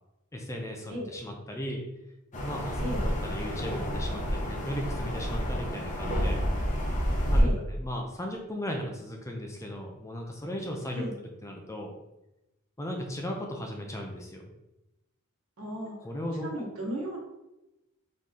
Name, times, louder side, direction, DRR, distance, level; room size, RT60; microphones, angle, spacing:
voice 1, 0.3-1.8 2.4-6.4 7.3-7.5 7.8-11.1 11.4-11.9 12.8-14.5 16.0-16.7, equal, 15° left, 1 dB, 0.5 m, -36 dB
sound 1, 2.3-7.4, equal, 35° left, 0.8 m, -29 dB
voice 2, 15.6-15.9 16.4-17.2, equal, 65° right, -2 dB, 1.3 m, -35 dB
4.1 x 3.1 x 3.6 m, 0.95 s
head